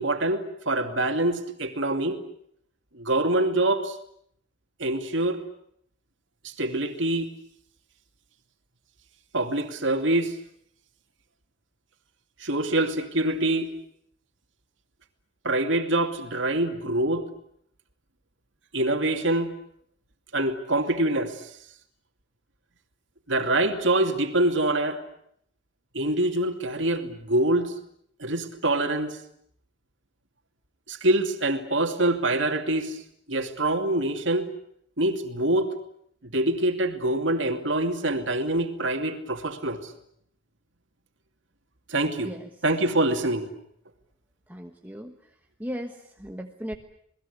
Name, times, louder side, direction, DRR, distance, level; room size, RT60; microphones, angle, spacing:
voice 1, 0.0-2.2 2.9-4.0 4.8-5.4 6.4-7.3 9.3-10.4 12.4-13.7 15.4-17.3 18.7-19.5 20.3-21.5 23.3-25.0 25.9-27.7 28.2-29.2 30.9-33.0 33.3-34.5 35.0-35.7 36.2-39.9 41.9-42.3 42.6-43.5, right 1 dB, 75° right, 6 dB, 2.6 m, -25 dB
voice 2, 44.5-45.3 45.6-46.7, equal, 10° right, 4 dB, 1.2 m, -37 dB
28.5 x 20.0 x 8.4 m, 0.69 s
head